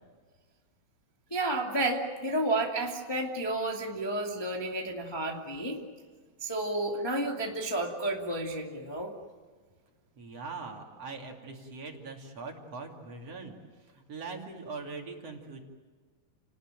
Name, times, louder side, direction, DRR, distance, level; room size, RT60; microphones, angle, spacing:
voice 1, 1.3-5.8 6.4-9.1, right 2 dB, 10° left, 0 dB, 1.7 m, -31 dB
voice 2, 10.2-13.6 13.9-15.6, right 4 dB, 45° right, 1 dB, 3.4 m, -42 dB
30.0 x 19.5 x 9.0 m, 1.5 s
omnidirectional pair, 4.2 m